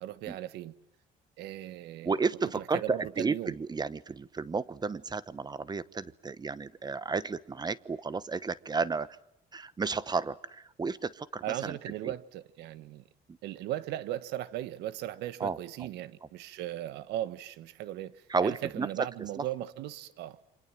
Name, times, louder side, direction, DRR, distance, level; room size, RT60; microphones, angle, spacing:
voice 1, 0.0-0.7 1.4-2.2 2.5-3.5 11.4-13.0 13.4-20.4, right 13 dB, 85° right, 1.5 m, -37 dB
voice 2, 2.0-9.1 9.5-11.8 12.0-12.1 13.3-13.4 15.4-15.6 18.3-18.9, right 4 dB, 25° right, 1.1 m, -32 dB
28.5 x 26.0 x 7.6 m
cardioid pair, 110°, 17 cm